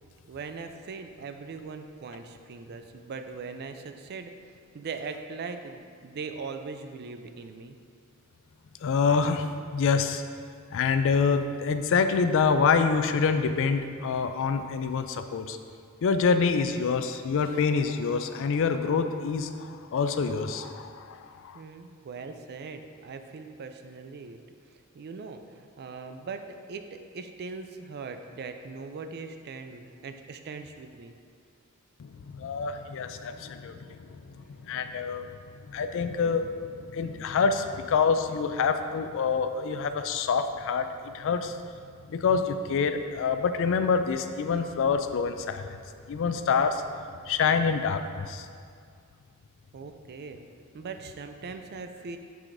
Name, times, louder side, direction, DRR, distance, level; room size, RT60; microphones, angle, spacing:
voice 1, 0.3-4.3 4.7-7.8 21.5-24.4 24.7-31.1 33.2-33.3 49.7-50.4 50.7-52.2, right 4 dB, 50° right, 7 dB, 0.4 m, -40 dB
voice 2, 8.8-9.5 9.7-10.2 10.7-15.6 16.0-21.6 32.0-34.3 34.6-35.2 35.7-41.6 42.1-45.8 46.1-46.8 47.3-48.5, left 5 dB, 65° left, 9 dB, 0.4 m, -26 dB
9.2 x 4.8 x 2.6 m, 2.2 s
head